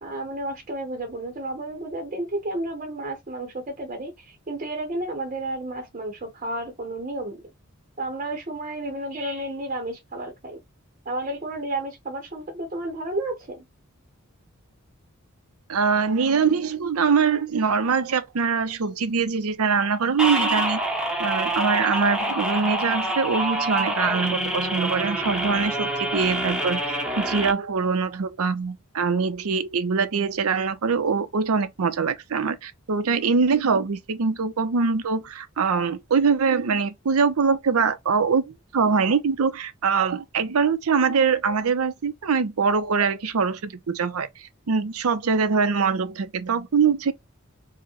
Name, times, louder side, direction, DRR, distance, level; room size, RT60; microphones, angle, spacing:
voice 1, 0.0-7.4 8.0-10.6 11.1-13.6, right 1 dB, 35° right, 0.7 m, -32 dB
voice 2, 15.7-20.8 21.2-44.3 44.7-47.1, right 5 dB, 90° right, 0.6 m, -23 dB
sound 1, 20.2-27.5, right 1 dB, 5° right, 0.8 m, -26 dB
4.7 x 2.1 x 2.9 m
head